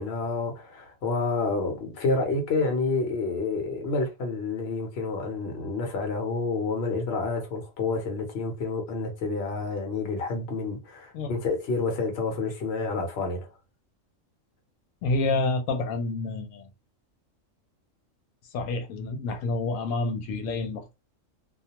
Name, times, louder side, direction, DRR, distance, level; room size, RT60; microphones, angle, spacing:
voice 1, 0.0-13.5, left 3 dB, 55° left, 1.0 m, -29 dB
voice 2, 15.0-16.7 18.5-20.9, left 3 dB, 85° left, 1.0 m, -28 dB
2.3 x 2.2 x 2.8 m
omnidirectional pair, 1.4 m